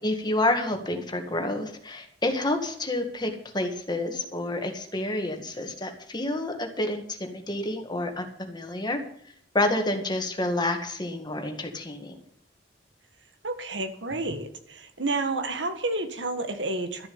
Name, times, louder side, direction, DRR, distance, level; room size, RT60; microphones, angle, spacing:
voice 1, 0.0-9.0 9.5-12.2, left 1 dB, 25° left, 4 dB, 1.8 m, -29 dB
voice 2, 13.4-17.1, right 2 dB, 80° right, 7 dB, 1.7 m, -30 dB
13.0 x 7.1 x 8.6 m, 0.64 s
head